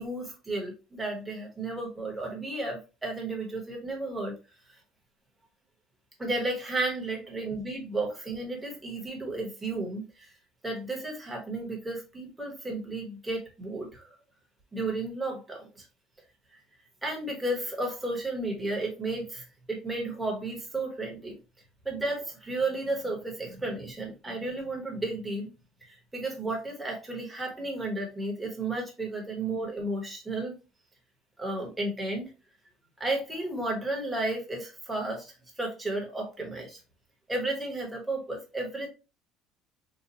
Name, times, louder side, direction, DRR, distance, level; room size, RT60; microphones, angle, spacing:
voice 1, 0.0-4.3 6.2-10.3 10.6-14.1 14.7-15.8 16.5-16.6 17.0-21.3 21.8-25.5 25.8-30.6 31.4-32.2 33.0-36.8 37.3-38.9, right 2 dB, 5° right, -1 dB, 1.2 m, -33 dB
4.0 x 2.5 x 2.8 m, 0.30 s
cardioid pair, 160°, 0 cm